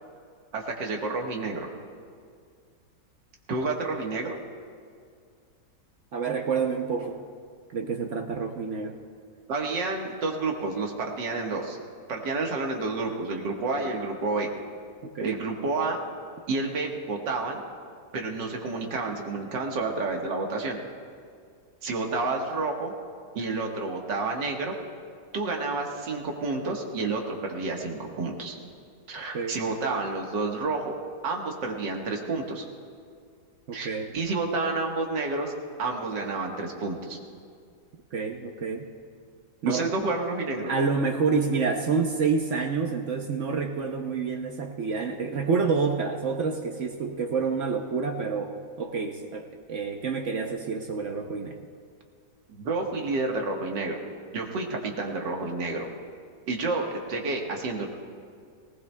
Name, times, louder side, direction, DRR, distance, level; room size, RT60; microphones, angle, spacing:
voice 1, 0.5-1.7 3.5-4.4 9.5-11.8 12.1-14.5 15.2-16.0 16.5-17.6 18.1-20.8 21.8-22.9 23.4-24.7 25.3-28.6 29.1-30.9 31.2-32.7 33.7-35.5 35.8-37.2 39.6-40.7 52.6-54.0 54.3-55.9 56.5-57.9, right 3 dB, 90° right, 1 dB, 2.0 m, -30 dB
voice 2, 6.1-7.2 7.7-9.0 15.1-15.4 29.3-29.6 33.7-34.1 38.1-38.9 39.6-39.9 40.7-51.7, right 5 dB, 55° right, 3 dB, 0.9 m, -28 dB
19.0 x 19.0 x 2.2 m, 2.2 s
omnidirectional pair, 1.9 m